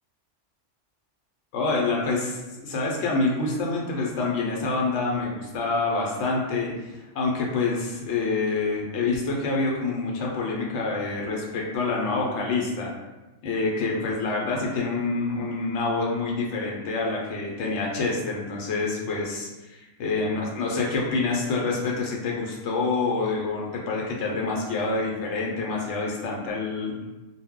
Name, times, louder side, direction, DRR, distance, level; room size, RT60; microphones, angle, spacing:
voice 1, 1.5-12.9 13.4-19.5 20.0-26.9, left 3 dB, 75° left, -2 dB, 0.9 m, -27 dB
2.2 x 2.1 x 3.5 m, 1.1 s
omnidirectional pair, 1.3 m